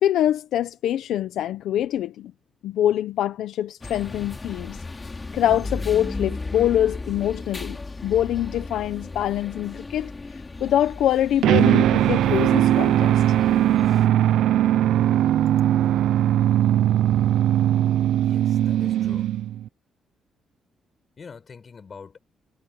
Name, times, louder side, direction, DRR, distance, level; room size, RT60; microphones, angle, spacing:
voice 1, 0.0-2.3 2.6-4.8 5.3-13.2, left 11 dB, 80° left, 1.2 m, -24 dB
sound 1, 3.8-14.1, left 3 dB, 25° left, 3.6 m, -36 dB
sound 2, 11.4-19.7, right 12 dB, 80° right, 0.7 m, -19 dB
voice 2, 18.2-19.4 21.2-22.2, left 5 dB, 40° left, 5.3 m, -44 dB
cardioid pair, 90°, 0 cm